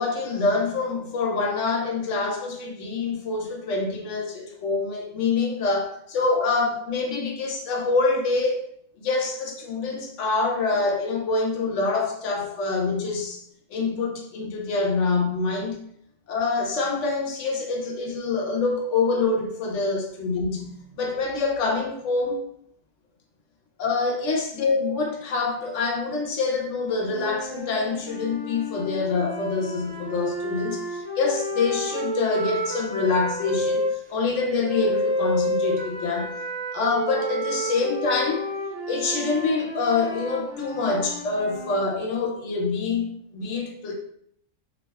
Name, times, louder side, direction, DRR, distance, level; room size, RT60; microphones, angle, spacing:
voice 1, 0.0-8.6 9.0-13.4 13.7-15.8 16.3-20.7 20.9-22.4 23.8-36.3 36.7-38.4 38.9-43.9, left 4 dB, 75° left, 1 dB, 0.9 m, -26 dB
sound 1, 27.0-33.9 34.6-41.8, equal, 75° right, 1.1 m, -30 dB
2.7 x 2.2 x 3.3 m, 0.67 s
omnidirectional pair, 1.3 m